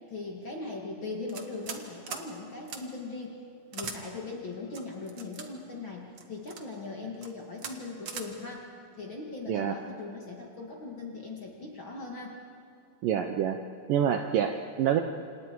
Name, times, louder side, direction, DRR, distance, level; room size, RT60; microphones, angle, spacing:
voice 1, 0.1-3.4 3.7-12.4, left 3 dB, 40° left, -1 dB, 2.1 m, -39 dB
sound 1, 1.3-2.3 2.7-2.8 3.7-4.0 4.7-5.5 6.2-6.6 7.1-7.3 7.6-7.7 8.1-8.3, right 6 dB, 55° right, 1.6 m, -39 dB
voice 2, 13.0-13.6 13.9-15.0, right 9 dB, 75° right, 5 dB, 2.1 m, -26 dB
28.0 x 27.5 x 4.7 m, 2.6 s
omnidirectional pair, 4.8 m